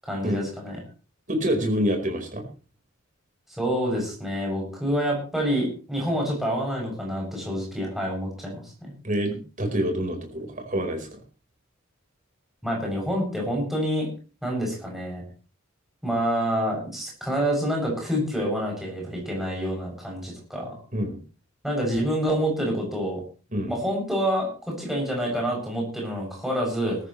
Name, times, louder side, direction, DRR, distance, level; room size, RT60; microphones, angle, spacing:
voice 1, 0.0-0.8 3.6-8.9 12.6-14.1 14.4-15.2 16.0-20.7 21.6-23.2 23.7-27.0, equal, ahead, -2 dB, 7.8 m, -27 dB
voice 2, 1.3-2.5 9.0-11.2 20.9-21.2 23.5-23.8, equal, 40° right, 3 dB, 4.7 m, -27 dB
20.0 x 14.0 x 3.3 m, 0.35 s
head